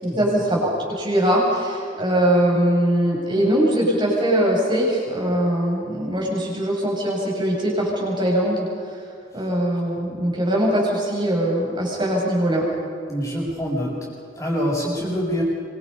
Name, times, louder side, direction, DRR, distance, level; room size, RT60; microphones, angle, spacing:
voice 1, 0.0-8.7 9.3-12.6, right 1 dB, 25° right, -3 dB, 7.8 m, -21 dB
voice 2, 13.1-13.9 14.4-15.4, equal, 15° left, -9 dB, 7.4 m, -25 dB
26.0 x 26.0 x 5.7 m, 2.5 s
head